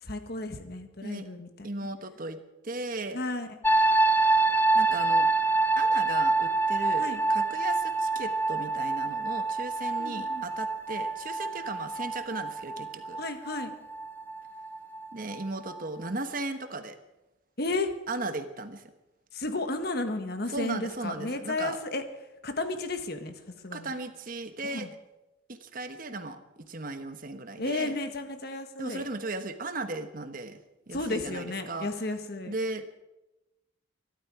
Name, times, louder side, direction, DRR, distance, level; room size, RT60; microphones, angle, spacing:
voice 1, 0.0-1.7 3.1-3.6 7.0-7.2 10.0-10.4 13.2-13.7 17.6-17.9 19.3-22.0 22.4-23.3 23.6-23.9 24.6-24.9 27.6-29.1 30.9-32.5, left 2 dB, 50° left, 8 dB, 1.5 m, -33 dB
voice 2, 1.6-2.4 2.6-3.2 4.7-5.3 5.8-13.2 15.1-17.0 18.1-18.8 20.5-21.8 23.7-24.9 25.5-27.9 28.8-30.6 30.9-31.9 32.5-33.0, right 2 dB, 45° right, 9 dB, 1.2 m, -36 dB
sound 1, 3.6-15.4 15.7-16.1, right 3 dB, 10° left, 0.6 m, -26 dB
24.0 x 12.0 x 4.9 m, 1.0 s
head